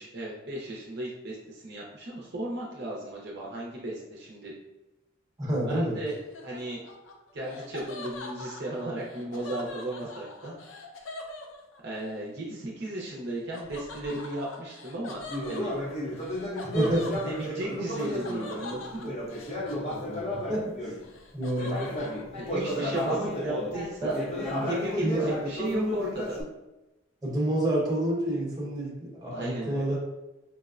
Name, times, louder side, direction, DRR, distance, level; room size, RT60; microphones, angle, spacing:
voice 1, 0.0-4.5 5.7-6.1 6.4-6.8 7.3-10.6 11.8-15.7 17.2-19.1 22.3-24.2 24.6-26.3 29.3-29.8, right 1 dB, 55° right, -4 dB, 0.6 m, -35 dB
voice 2, 5.4-6.0 16.6-17.2 19.6-21.0 21.3-21.8 24.0-24.2 24.5-24.7 25.0-25.4 27.2-30.0, right 1 dB, 20° right, -5 dB, 0.9 m, -29 dB
Laughter, 6.1-12.1 13.5-20.5 20.8-22.2, left 2 dB, 75° left, 0.5 m, -43 dB
Conversation, 15.3-21.0 21.5-26.4, equal, 30° left, 0.5 m, -33 dB
4.6 x 2.1 x 2.4 m, 1.0 s
head